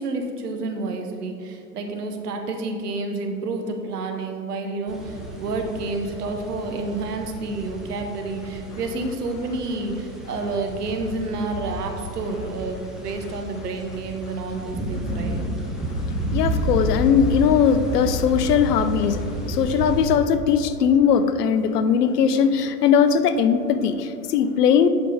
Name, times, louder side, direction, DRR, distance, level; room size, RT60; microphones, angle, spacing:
voice 1, 0.0-15.4, right 3 dB, 75° right, 1.1 m, -29 dB
sound 1, 4.9-20.2, right 1 dB, ahead, 0.9 m, -31 dB
voice 2, 15.8-24.9, left 7 dB, 75° left, 0.6 m, -20 dB
8.1 x 5.9 x 3.4 m
hypercardioid pair, 105°, 48 cm